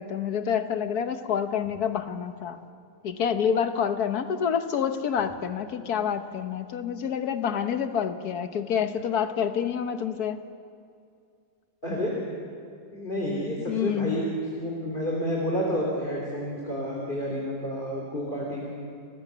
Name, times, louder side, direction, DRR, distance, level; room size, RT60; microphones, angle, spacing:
voice 1, 0.0-2.6 3.0-10.4 13.7-14.3, left 7 dB, 75° left, 9 dB, 1.5 m, -28 dB
voice 2, 11.8-12.1 12.9-14.2 14.5-18.7, equal, 30° left, -3 dB, 3.3 m, -30 dB
30.0 x 15.5 x 6.9 m, 2.4 s
omnidirectional pair, 1.7 m